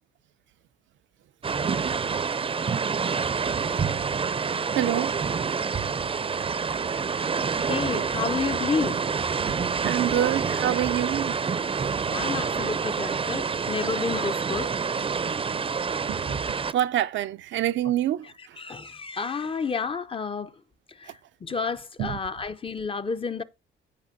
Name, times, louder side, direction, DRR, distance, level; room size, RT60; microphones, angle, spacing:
sound 1, 1.4-16.7, right 5 dB, 30° right, 0.6 m, -27 dB
voice 1, 1.8-2.2 4.7-5.3 6.6-7.0 9.5-11.4 16.1-18.6 22.0-22.2, right 12 dB, 70° right, 0.5 m, -28 dB
voice 2, 7.6-9.0 12.1-14.7 18.6-20.5 21.0-21.1 21.4-23.4, left 5 dB, 25° left, 0.7 m, -30 dB
15.0 x 5.1 x 2.7 m
cardioid pair, 90°, 20 cm